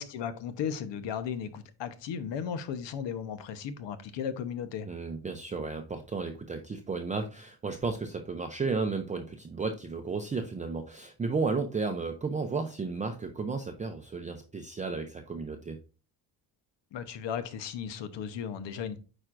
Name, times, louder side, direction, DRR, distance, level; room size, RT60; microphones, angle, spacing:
voice 1, 0.0-4.9 16.9-19.0, left 7 dB, 75° left, 1.0 m, -35 dB
voice 2, 4.8-15.8, right 4 dB, 15° right, 0.5 m, -33 dB
9.1 x 4.4 x 2.5 m
cardioid pair, 145°, 43 cm